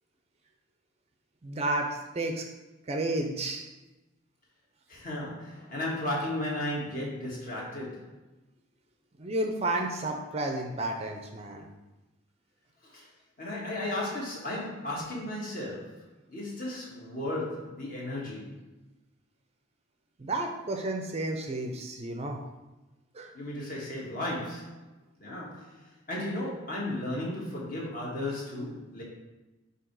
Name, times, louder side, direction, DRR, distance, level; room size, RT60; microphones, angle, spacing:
voice 1, 1.4-2.4 2.9-3.7 9.2-11.7 20.2-22.4 23.1-23.3, right 2 dB, 30° right, 3 dB, 0.5 m, -31 dB
voice 2, 4.9-8.2 12.8-13.1 13.4-18.6 23.3-24.8 25.2-25.8 26.1-29.0, left 1 dB, 40° left, -4 dB, 1.6 m, -35 dB
7.3 x 2.9 x 4.6 m, 1.1 s
head